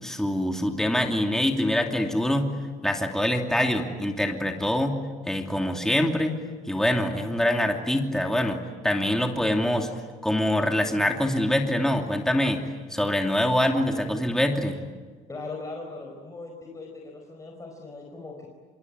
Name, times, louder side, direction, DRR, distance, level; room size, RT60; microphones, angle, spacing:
voice 1, 0.0-2.5 2.8-5.0 5.3-6.4 6.7-9.9 10.2-12.6 12.9-14.8, left 1 dB, 5° left, 3 dB, 2.7 m, -24 dB
voice 2, 15.3-18.5, left 3 dB, 20° left, 0 dB, 4.7 m, -39 dB
26.0 x 23.5 x 9.6 m, 1.5 s
cardioid pair, 110°, 17 cm